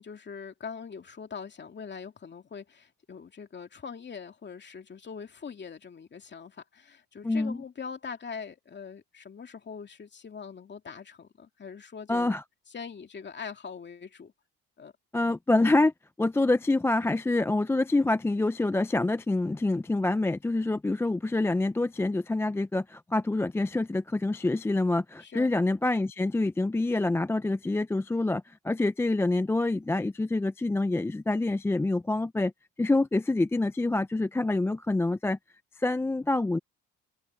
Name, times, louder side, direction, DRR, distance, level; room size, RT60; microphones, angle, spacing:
voice 1, 0.0-12.3 12.7-14.3 14.8-14.9 25.2-25.5, left 6 dB, 35° left, 2.6 m, -42 dB
voice 2, 7.2-7.6 12.1-12.4 15.1-15.9 16.2-32.5 32.8-35.4 35.8-36.6, left 2 dB, 10° left, 0.4 m, -26 dB
open air
cardioid pair, 100°, 30 cm